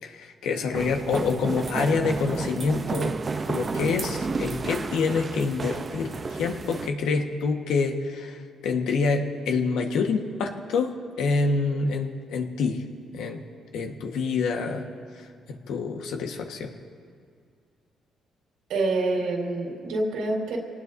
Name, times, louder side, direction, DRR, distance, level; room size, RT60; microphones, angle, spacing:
voice 1, 0.0-3.2 3.4-12.8 13.1-13.4 13.7-14.9 15.7-16.7, left 4 dB, 85° left, 3 dB, 1.5 m, -27 dB
sound 1, 0.7-6.9, right 4 dB, 35° right, 0.7 m, -31 dB
voice 2, 18.7-20.6, right 2 dB, 90° right, -2 dB, 4.1 m, -26 dB
26.5 x 19.0 x 2.7 m, 2.2 s
cardioid pair, 90°, 0 cm